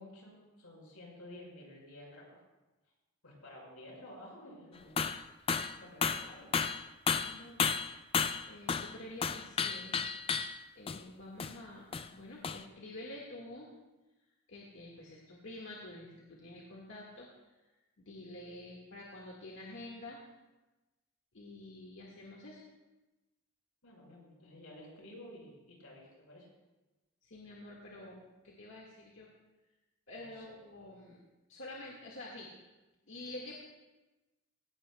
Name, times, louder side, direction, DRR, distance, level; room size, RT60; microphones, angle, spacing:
voice 1, 0.0-2.4 3.2-5.0 5.8-6.7 23.8-26.5 30.2-30.6, left 1 dB, 85° left, -2 dB, 5.4 m, -52 dB
sound 1, 5.0-5.2 5.5-5.8 6.0-9.0 9.2-10.6 10.9-11.0 11.4-11.5 11.9-12.1 12.4-12.6, left 6 dB, 25° left, 0.3 m, -32 dB
voice 2, 7.2-7.6 8.4-9.9 10.8-13.7 14.5-17.3 18.0-20.2 21.3-22.6 27.2-28.2 28.4-29.3 30.1-31.2 31.5-32.5 33.1-33.6, left 1 dB, 60° left, -3 dB, 1.7 m, -48 dB
17.5 x 17.0 x 2.3 m, 1.1 s
head